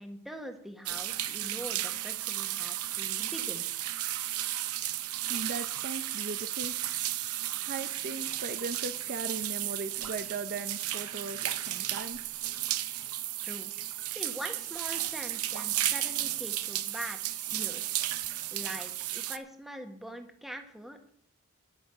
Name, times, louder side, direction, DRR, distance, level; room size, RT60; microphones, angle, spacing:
voice 1, 0.0-3.7 13.4-13.7 14.1-18.0 18.5-21.1, equal, ahead, 5 dB, 1.4 m, -43 dB
sound 1, 0.9-19.4, right 13 dB, 85° right, 0.7 m, -34 dB
voice 2, 5.3-6.8 7.6-12.3, right 3 dB, 45° right, 8 dB, 0.7 m, -38 dB
10.5 x 10.5 x 6.3 m, 0.67 s
head